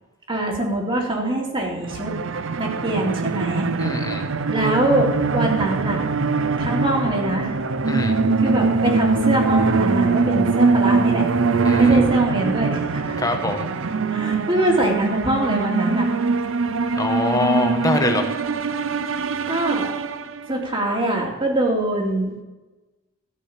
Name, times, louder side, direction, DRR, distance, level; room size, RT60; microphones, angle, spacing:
voice 1, 0.3-2.1 2.6-4.1 4.5-6.0 6.6-7.6 8.4-11.3 11.7-13.2 14.1-16.1 19.1-20.0 20.5-22.4, right 1 dB, 25° right, 0 dB, 2.4 m, -23 dB
sound 1, 1.8-20.6, right 4 dB, 80° right, 0.6 m, -22 dB
voice 2, 3.8-4.3 7.9-8.2 11.6-12.0 13.2-13.7 17.0-18.3, left 2 dB, 20° left, 5 dB, 1.3 m, -24 dB
13.5 x 5.6 x 8.4 m, 1.1 s
head